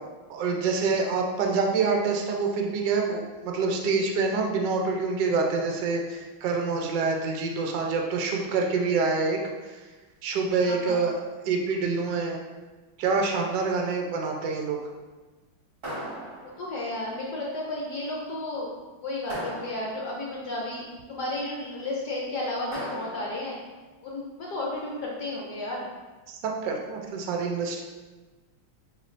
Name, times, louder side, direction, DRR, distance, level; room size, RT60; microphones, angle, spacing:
voice 1, 0.3-9.4 9.7-9.8 10.2-11.1 11.4-12.4 13.0-14.8 26.3-27.8, right 4 dB, 75° right, 1 dB, 1.1 m, -26 dB
voice 2, 10.6-11.0 16.6-18.7 19.0-23.6 24.0-25.9, left 2 dB, 70° left, -3 dB, 1.0 m, -33 dB
sound 1, 15.8-16.9 19.3-20.3 22.7-23.6, right 1 dB, 35° right, 1.0 m, -38 dB
5.4 x 3.1 x 2.5 m, 1.3 s
omnidirectional pair, 2.3 m